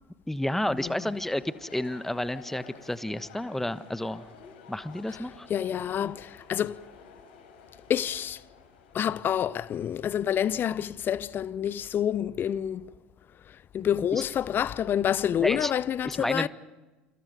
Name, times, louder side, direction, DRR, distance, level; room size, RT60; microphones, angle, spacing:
voice 1, 0.3-4.2 4.7-5.5 14.1-14.2 15.4-15.7 16.0-16.5, left 1 dB, 5° left, 1.3 m, -31 dB
sound 1, 0.7-10.6, left 5 dB, 70° left, 7.1 m, -52 dB
voice 2, 5.5-6.8 7.9-8.4 8.9-12.9 13.7-16.5, left 9 dB, 40° left, 0.9 m, -28 dB
29.5 x 28.5 x 5.3 m
figure-of-eight pair, 65°, 6 cm